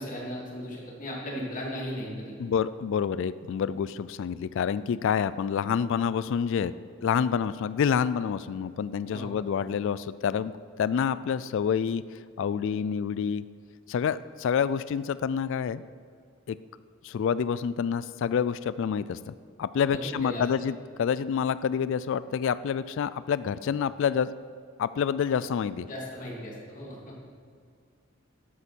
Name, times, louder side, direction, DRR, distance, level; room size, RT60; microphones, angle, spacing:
voice 1, 0.0-2.3 9.1-9.3 19.9-20.4 25.9-27.0, equal, 40° left, -4 dB, 2.7 m, -36 dB
voice 2, 2.4-6.7 7.0-10.5 10.8-12.0 12.4-13.4 13.9-15.8 16.5-16.6 17.0-19.3 19.6-24.3 24.8-25.9, left 7 dB, 65° left, 16 dB, 0.3 m, -28 dB
12.0 x 8.3 x 4.5 m, 2.3 s
head